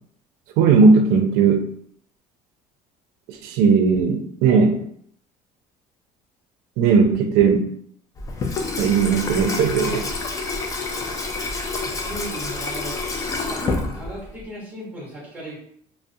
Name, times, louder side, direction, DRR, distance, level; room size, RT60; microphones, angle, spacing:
voice 1, 0.6-1.7 3.3-4.8 6.8-7.7 8.8-10.1, right 5 dB, 80° right, 5 dB, 0.5 m, -17 dB
Water tap faucet / Sink (filling or washing), 8.2-14.4, left 3 dB, 20° left, 0.3 m, -28 dB
voice 2, 11.8-13.0 13.5-15.6, right 1 dB, 10° right, -5 dB, 1.0 m, -36 dB
2.3 x 2.0 x 2.6 m, 0.64 s
cardioid pair, 145°, 15 cm